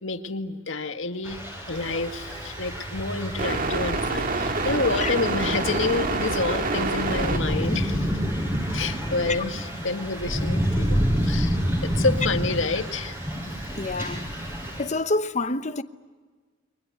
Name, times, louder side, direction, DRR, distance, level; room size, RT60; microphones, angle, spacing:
voice 1, 0.0-8.2 8.7-11.0 11.2-13.2, left 3 dB, 90° left, 1.9 m, -28 dB
Thunder / Rain, 1.2-14.8, equal, 15° right, 6.7 m, -29 dB
sound 1, 1.7-14.8, right 3 dB, 45° right, 1.9 m, -31 dB
voice 2, 13.8-14.3 14.8-15.8, left 2 dB, 40° left, 1.0 m, -27 dB
30.0 x 24.0 x 8.1 m
head